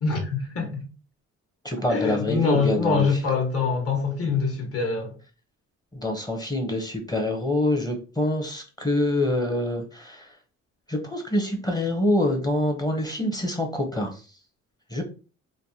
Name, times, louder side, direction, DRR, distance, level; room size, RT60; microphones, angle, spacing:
voice 1, 0.0-0.8 1.9-5.1, left 4 dB, 50° left, 1.2 m, -24 dB
voice 2, 1.6-3.1 5.9-10.3 10.9-14.1 14.9-15.0, left 1 dB, 15° left, 0.7 m, -25 dB
3.2 x 2.1 x 2.7 m
cardioid pair, 90°, 30 cm